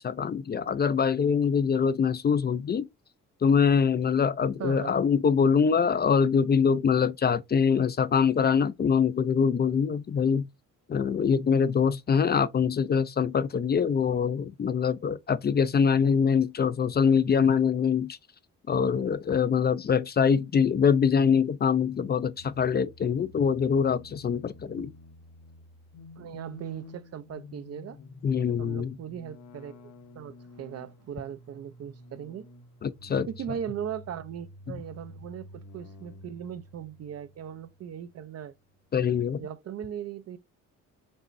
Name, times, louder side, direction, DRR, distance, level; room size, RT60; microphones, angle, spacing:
voice 1, 0.0-2.9 3.4-10.5 10.9-18.2 18.7-24.9 28.2-28.9 32.8-33.3 38.9-39.4, left 6 dB, 35° left, 0.4 m, -24 dB
voice 2, 4.6-4.9 5.3-5.4 26.2-28.0 28.6-29.8 30.1-32.5 33.3-38.5 39.4-40.4, right 9 dB, 55° right, 0.6 m, -38 dB
sound 1, 22.4-38.3, left 2 dB, 70° left, 1.1 m, -50 dB
5.3 x 3.0 x 2.6 m
cardioid pair, 90°, 30 cm